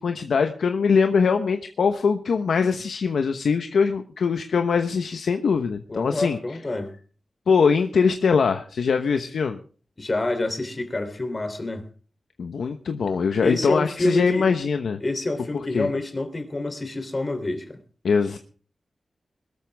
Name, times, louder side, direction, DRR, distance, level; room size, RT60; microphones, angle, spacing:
voice 1, 0.0-6.4 7.5-9.6 12.4-15.0 15.5-15.9 18.0-18.4, left 5 dB, 90° left, 7 dB, 1.0 m, -22 dB
voice 2, 5.9-6.9 10.0-11.9 13.4-14.5 15.0-17.8, left 2 dB, 35° left, 8 dB, 3.1 m, -27 dB
21.0 x 13.5 x 3.4 m, 0.41 s
cardioid pair, 70°, 0 cm